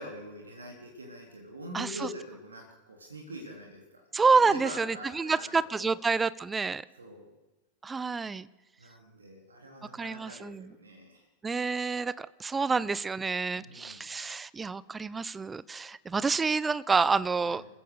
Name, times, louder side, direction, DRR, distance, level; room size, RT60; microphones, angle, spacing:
voice 1, 0.0-4.0 4.3-5.9 6.9-7.3 8.8-11.3 13.6-14.0 17.4-17.7, equal, 75° right, 2 dB, 3.4 m, -44 dB
voice 2, 1.7-2.1 4.1-6.8 7.8-8.5 10.0-10.7 11.4-17.6, right 4 dB, 15° right, 19 dB, 0.7 m, -28 dB
28.5 x 15.5 x 6.7 m, 1.2 s
figure-of-eight pair, 90°, 0 cm